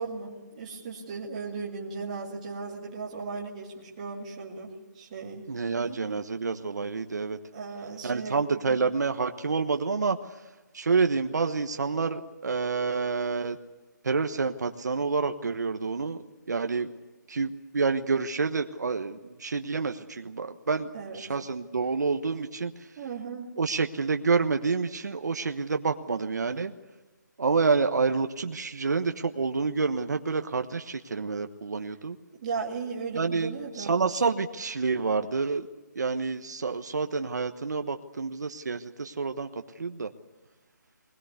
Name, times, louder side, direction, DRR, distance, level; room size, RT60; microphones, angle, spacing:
voice 1, 0.0-5.5 5.8-6.0 7.5-8.9 20.9-21.2 23.0-23.5 32.4-33.9, right 4 dB, 20° right, -5 dB, 2.4 m, -36 dB
voice 2, 5.5-7.4 8.0-10.2 10.7-13.6 14.0-16.2 16.5-16.9 17.3-20.9 21.1-22.7 23.6-26.7 27.4-32.2 33.1-35.7 35.9-39.5 39.8-40.1, right 4 dB, 65° right, 6 dB, 1.2 m, -28 dB
21.0 x 20.5 x 8.2 m, 1.1 s
hypercardioid pair, 180°, 10 cm